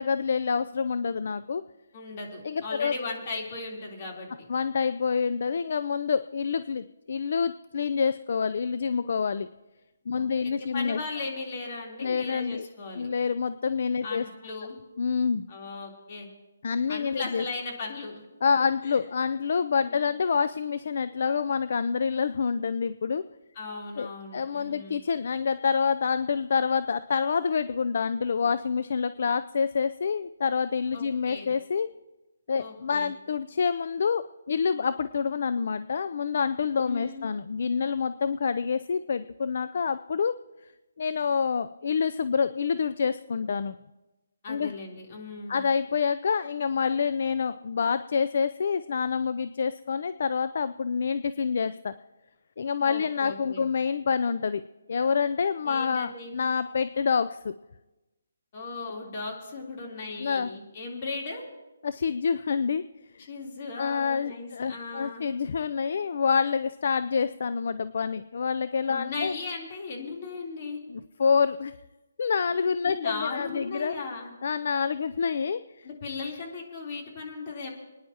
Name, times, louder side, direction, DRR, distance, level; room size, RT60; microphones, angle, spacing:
voice 1, 0.0-1.6 2.4-2.9 4.5-9.5 10.1-11.0 12.0-12.7 13.0-14.2 15.0-15.5 16.6-17.4 18.4-23.2 24.0-31.9 32.5-40.4 41.0-43.8 44.5-44.7 45.5-51.9 52.6-54.6 54.9-57.5 60.2-60.5 61.8-62.8 63.8-69.3 70.9-71.7 72.2-73.9 74.4-75.9, left 6 dB, 55° left, 13 dB, 0.4 m, -27 dB
voice 2, 1.9-4.5 10.1-13.1 14.0-14.8 15.5-16.3 16.9-18.2 18.8-19.0 19.8-20.1 23.5-25.0 30.9-31.5 32.6-33.1 36.9-37.3 44.4-45.6 52.9-53.7 55.6-56.4 58.5-61.5 63.3-65.2 68.9-70.8 72.8-74.3 75.8-77.7, left 3 dB, 35° left, -1 dB, 3.4 m, -37 dB
29.5 x 10.0 x 2.9 m, 1.1 s
hypercardioid pair, 160°, 0 cm